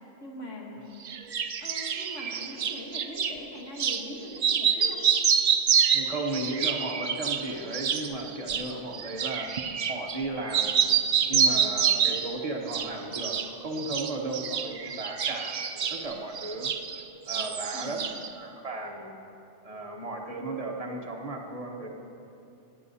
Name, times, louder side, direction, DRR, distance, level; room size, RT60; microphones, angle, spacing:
voice 1, 0.2-0.9 1.6-5.1 17.7-18.0, left 1 dB, 85° left, -1 dB, 1.6 m, -41 dB
sound 1, 1.0-3.3 3.8-4.0 4.3-10.2 10.5-12.3 12.7-13.5 13.8-17.0 17.3-18.3, right 7 dB, 60° right, 0.4 m, -27 dB
voice 2, 5.9-9.5 9.9-10.9 11.3-16.7 17.3-18.0 18.3-19.2 19.6-21.9, right 2 dB, 30° right, 0 dB, 1.1 m, -35 dB
17.0 x 10.5 x 2.7 m, 2.7 s
omnidirectional pair, 1.2 m